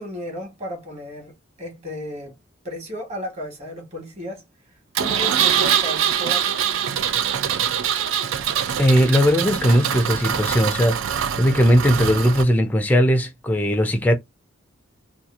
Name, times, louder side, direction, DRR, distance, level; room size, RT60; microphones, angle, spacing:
voice 1, 0.0-2.3 2.6-4.4 5.0-6.5, equal, 35° right, 1.3 m, -34 dB
Engine, 5.0-12.4, right 8 dB, 65° right, 0.4 m, -23 dB
voice 2, 8.8-14.1, equal, 10° left, 0.3 m, -18 dB
2.8 x 2.3 x 2.4 m
head